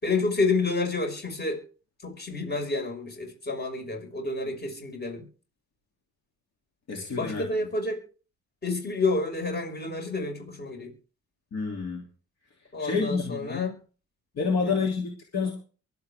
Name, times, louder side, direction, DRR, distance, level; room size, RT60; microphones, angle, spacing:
voice 1, 0.0-1.6 2.0-5.3 7.1-8.0 8.6-10.9 12.7-13.8 14.6-14.8, left 3 dB, 35° left, 3 dB, 5.7 m, -29 dB
voice 2, 6.9-7.4 11.5-12.1 12.8-13.6 14.3-15.5, left 5 dB, 60° left, 1 dB, 3.1 m, -28 dB
23.5 x 8.1 x 3.6 m, 0.37 s
cardioid pair, 90°, 30 cm